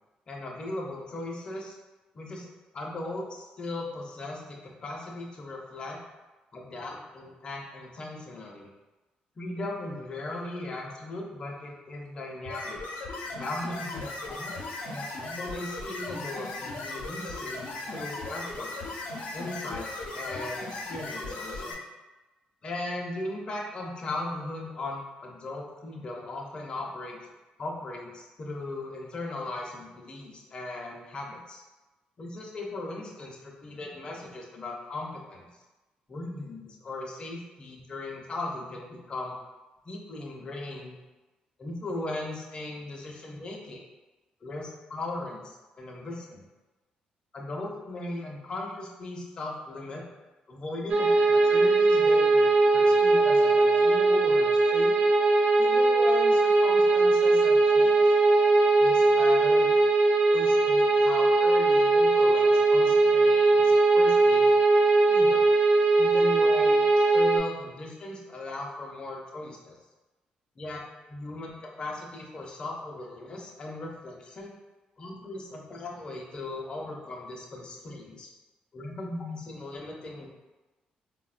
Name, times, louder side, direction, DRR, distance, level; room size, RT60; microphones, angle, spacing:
voice 1, 0.3-1.8 2.1-6.0 6.5-8.7 9.4-12.8 13.3-14.5 14.8-17.6 17.9-18.7 19.3-19.9 20.1-21.8 22.6-27.2 27.6-31.6 32.2-35.5 36.1-39.4 39.8-41.0 41.6-43.8 44.4-46.4 47.3-50.0 50.5-54.9 55.6-58.1 58.8-59.7 60.3-64.5 65.1-65.5 66.0-69.8 70.6-74.5 75.0-78.3 78.7-80.3, left 2 dB, 35° left, -1 dB, 0.5 m, -38 dB
sound 1, 12.5-21.7, left 2 dB, 85° left, 0.5 m, -37 dB
sound 2, 50.9-67.4, right 3 dB, 50° right, 0.4 m, -20 dB
3.6 x 2.1 x 2.4 m, 1.1 s
cardioid pair, 135°, 3 cm